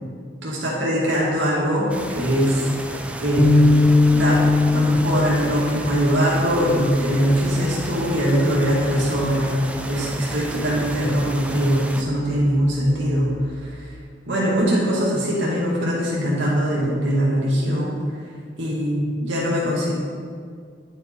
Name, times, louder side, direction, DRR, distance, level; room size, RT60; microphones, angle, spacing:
voice 1, 0.4-2.7 3.2-3.5 4.1-4.4 4.7-9.6 9.9-13.3 13.6-13.8 14.3-18.0 18.6-19.9, equal, 80° right, -6 dB, 2.2 m, -21 dB
sound 1, 1.9-12.0, right 1 dB, 5° right, 0.4 m, -33 dB
sound 2, 3.4-9.8, left 2 dB, 25° left, 1.1 m, -21 dB
10.5 x 5.6 x 4.4 m, 2.1 s
head